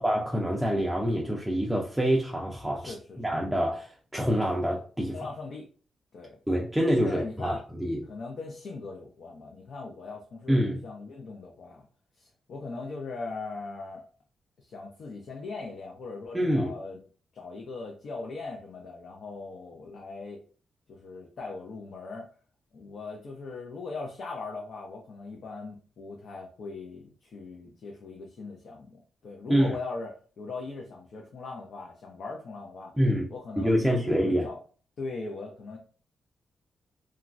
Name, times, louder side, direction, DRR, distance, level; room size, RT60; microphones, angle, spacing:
voice 1, 0.0-5.2 6.5-8.0 10.5-10.8 16.3-16.7 29.5-29.7 33.0-33.3 33.6-34.4, equal, 5° right, 0.4 m, -26 dB
voice 2, 2.8-3.4 5.1-5.7 6.1-6.4 7.0-7.6 8.0-11.9 12.2-14.0 14.6-17.0 17.3-20.4 20.9-22.3 22.7-30.1 30.4-32.9 33.3-34.6 35.0-35.8, left 3 dB, 65° left, 0.5 m, -40 dB
3.0 x 2.3 x 2.4 m
wide cardioid pair, 130°, 0 cm